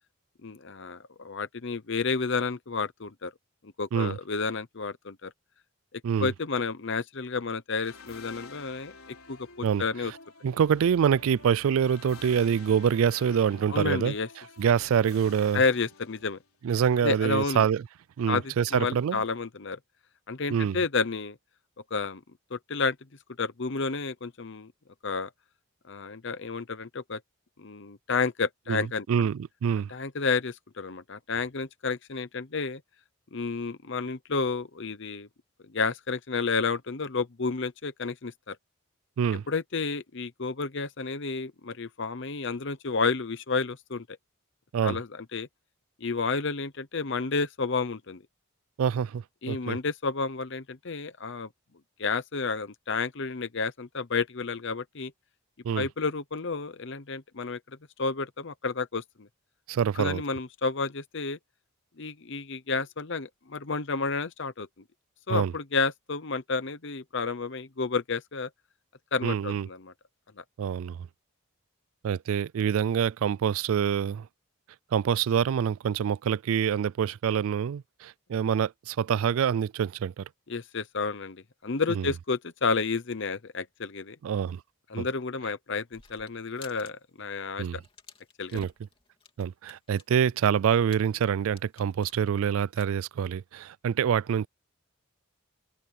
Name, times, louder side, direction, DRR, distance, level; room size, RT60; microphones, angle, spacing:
voice 1, 0.4-3.3 3.6-5.3 6.2-8.9 9.3-10.1 13.7-14.3 15.5-16.4 17.0-17.7 18.3-19.8 20.3-21.4 21.9-22.2 22.5-23.0 23.4-24.7 25.0-25.3 25.9-27.2 27.6-29.3 29.9-32.8 33.3-35.3 35.7-38.6 39.5-44.2 44.8-45.5 46.0-48.2 49.4-51.5 52.0-55.1 55.7-57.6 58.0-59.3 59.9-61.4 62.0-64.7 65.3-68.5 69.1-69.9 70.4-70.5 80.5-84.2 84.9-87.8 88.4-88.6, left 4 dB, 55° left, 0.8 m, -31 dB
sound 1, 7.8-16.7, left 4 dB, 80° left, 3.7 m, -49 dB
voice 2, 10.4-14.1 14.6-15.6 16.6-17.8 18.2-19.2 20.5-20.8 28.7-28.8 29.1-29.9 39.2-39.4 44.7-45.0 48.8-49.8 55.6-55.9 59.7-60.2 65.3-65.5 69.2-69.7 70.6-71.0 72.0-74.3 74.9-80.3 82.0-82.1 84.2-84.6 85.0-85.1 87.6-87.8 88.5-88.7 89.4-94.5, right 8 dB, 70° right, 0.3 m, -26 dB
sound 2, 85.9-86.9 87.2-87.4 87.7-92.8, left 4 dB, 25° left, 2.9 m, -53 dB
head